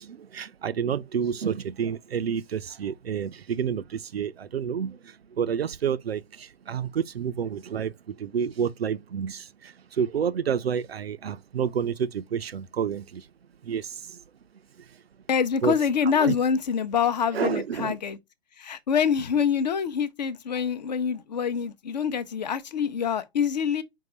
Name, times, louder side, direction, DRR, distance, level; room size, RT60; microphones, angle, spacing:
voice 1, 0.0-13.3 13.6-14.2 15.6-15.7 16.2-16.4 17.3-18.0, right 7 dB, 70° right, 0.5 m, -29 dB
voice 2, 15.3-18.2 18.6-23.8, left 7 dB, 40° left, 0.6 m, -25 dB
4.6 x 3.8 x 2.9 m
figure-of-eight pair, 125°, 32 cm